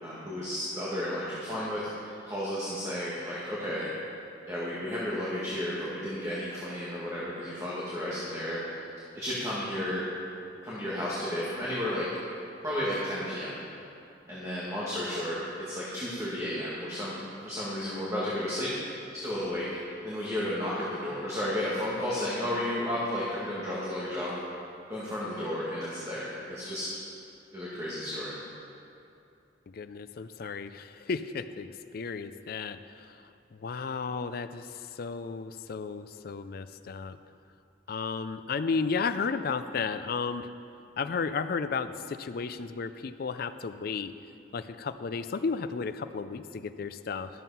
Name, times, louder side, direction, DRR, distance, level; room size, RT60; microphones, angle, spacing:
voice 1, 0.0-3.9 4.5-8.6 9.1-10.0 10.6-12.2 12.6-13.6 14.2-15.4 15.6-18.7 19.1-19.7 20.0-24.4 24.9-26.9 27.5-28.3, left 1 dB, 15° right, -8 dB, 1.7 m, -33 dB
voice 2, 29.7-33.2 33.5-37.2 37.9-40.5 41.0-44.1 44.5-47.3, left 5 dB, 55° left, 11 dB, 0.4 m, -33 dB
12.5 x 7.5 x 5.5 m, 2.6 s
head